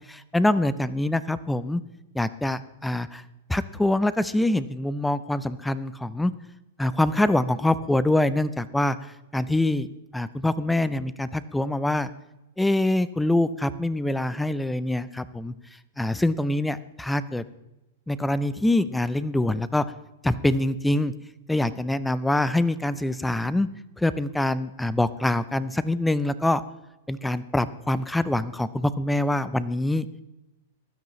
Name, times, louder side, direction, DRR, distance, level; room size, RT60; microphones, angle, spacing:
voice 1, 0.1-1.8 2.1-3.2 3.5-6.3 6.8-9.9 10.1-12.1 12.6-15.5 16.0-17.4 18.1-19.9 20.2-21.1 21.5-23.7 24.0-26.6 27.1-30.0, left 1 dB, 5° left, 16 dB, 0.5 m, -24 dB
16.0 x 12.0 x 3.1 m, 0.95 s
supercardioid pair, 145°, 0 cm